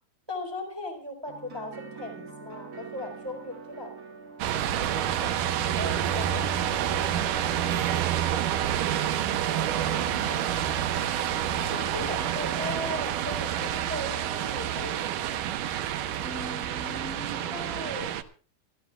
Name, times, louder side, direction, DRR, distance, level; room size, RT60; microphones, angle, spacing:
voice 1, 0.3-3.9 4.8-5.3 5.8-6.6 11.7-15.5 17.5-18.1, left 1 dB, 5° right, 5 dB, 3.3 m, -38 dB
sound 1, 1.2-9.2, right 4 dB, 35° right, 1.8 m, -44 dB
sound 2, 4.4-18.2, right 10 dB, 70° right, 2.5 m, -28 dB
voice 2, 7.6-9.0 9.9-12.9 16.1-17.6, left 1 dB, 85° left, 0 dB, 6.7 m, -44 dB
27.0 x 14.0 x 2.3 m, 0.41 s
omnidirectional pair, 4.1 m